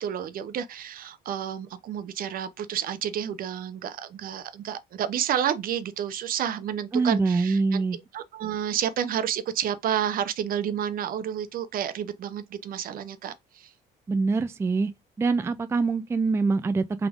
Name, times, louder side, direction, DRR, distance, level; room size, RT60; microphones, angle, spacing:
voice 1, 0.0-13.7, right 9 dB, 60° right, 0.7 m, -30 dB
voice 2, 6.9-8.0 14.1-14.9 15.2-17.1, right 4 dB, 15° right, 0.3 m, -24 dB
3.6 x 3.5 x 3.5 m
cardioid pair, 110°, 17 cm